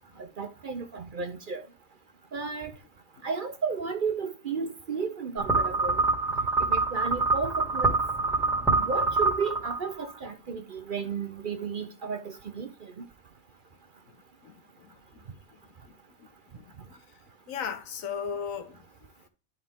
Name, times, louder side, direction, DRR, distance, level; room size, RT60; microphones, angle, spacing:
voice 1, 0.2-1.7 2.3-2.7 3.2-6.0 6.6-8.0 8.7-13.1, right 5 dB, 50° right, 0.7 m, -33 dB
sound 1, 5.4-10.1, right 3 dB, ahead, 2.0 m, -26 dB
voice 2, 14.4-15.0 16.2-16.3 16.6-17.0 17.5-18.9, left 7 dB, 80° left, 1.3 m, -36 dB
11.0 x 4.6 x 3.6 m
omnidirectional pair, 1.4 m